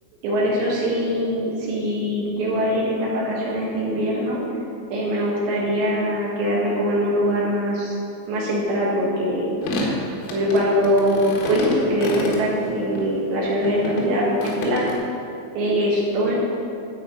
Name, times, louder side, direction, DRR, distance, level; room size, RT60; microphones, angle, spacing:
voice 1, 0.2-4.4 4.9-7.9 8.3-9.6 10.3-15.0 15.6-16.4, equal, 65° right, -6 dB, 3.8 m, -22 dB
sound 1, 9.6-13.1 13.6-14.9, left 1 dB, 90° left, 4.2 m, -28 dB
13.5 x 5.1 x 7.2 m, 2.5 s
omnidirectional pair, 6.0 m